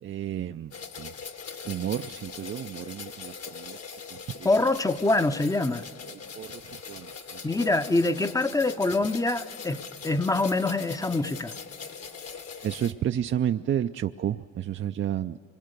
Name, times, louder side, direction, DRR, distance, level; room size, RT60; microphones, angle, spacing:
voice 1, 0.0-1.1 1.6-3.8 4.1-4.5 6.1-7.7 12.6-15.4, right 10 dB, 40° right, 0.4 m, -31 dB
sound 1, 0.7-12.9, left 6 dB, 55° left, 1.4 m, -41 dB
voice 2, 4.4-5.8 7.4-11.5, left 2 dB, 10° left, 0.6 m, -25 dB
25.0 x 21.0 x 6.7 m
cardioid pair, 90°, 30 cm